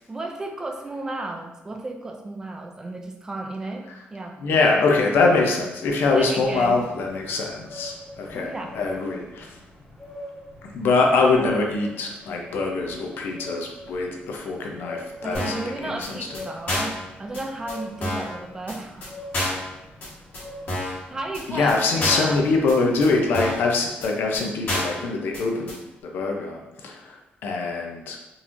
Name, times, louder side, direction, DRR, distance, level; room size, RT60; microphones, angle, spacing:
voice 1, 0.1-4.4 6.1-6.9 8.3-8.7 15.2-19.2 20.8-22.4, right 2 dB, 15° right, 3 dB, 0.4 m, -34 dB
voice 2, 4.4-9.6 10.6-16.2 21.5-25.8 26.0-28.2, left 3 dB, 70° left, 1 dB, 0.5 m, -23 dB
sound 1, 6.2-23.6, left 1 dB, ahead, 1.1 m, -43 dB
sound 2, 15.3-15.7 16.0-16.1 16.3-16.4 16.7-17.0 17.3-17.4 17.7-17.8 18.0-18.3 18.7-18.8 19.0-19.1 19.3-19.7 20.0-20.1 20.3-20.4 20.7-21.0 21.3-21.4 21.7-21.8 22.0-22.3 22.7-22.8 23.0-23.1 23.3-23.7 24.0-24.1 24.3-24.4 24.7-25.0 25.3-25.4 25.7-25.8, left 1 dB, 55° left, 1.5 m, -28 dB
3.8 x 2.9 x 2.6 m, 0.96 s
cardioid pair, 170°, 4 cm